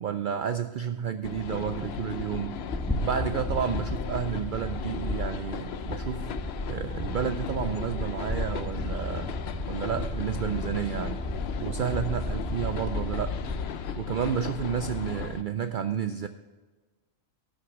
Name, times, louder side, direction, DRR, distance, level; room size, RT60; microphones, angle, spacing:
voice 1, 0.0-2.6 3.0-6.3 6.7-9.3 9.7-11.2 11.6-13.4 14.0-16.3, right 8 dB, 75° right, 9 dB, 0.4 m, -31 dB
sound 1, 1.2-15.4, left 7 dB, 60° left, 0.8 m, -36 dB
sound 2, 2.7-13.6, left 1 dB, 5° left, 1.1 m, -34 dB
12.5 x 6.6 x 5.9 m, 1.3 s
omnidirectional pair, 1.4 m